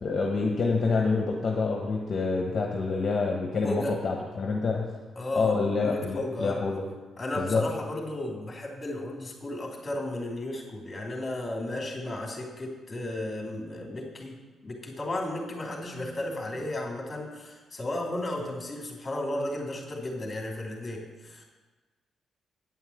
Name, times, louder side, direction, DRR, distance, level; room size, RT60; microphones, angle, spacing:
voice 1, 0.0-4.9 5.3-6.8 7.4-7.7, left 4 dB, 45° left, 0 dB, 1.2 m, -27 dB
voice 2, 3.6-3.9 5.2-6.6 7.2-14.4 14.6-21.4, left 1 dB, 25° left, -1 dB, 2.8 m, -34 dB
9.4 x 5.7 x 8.1 m, 1.3 s
cardioid pair, 100°, 0 cm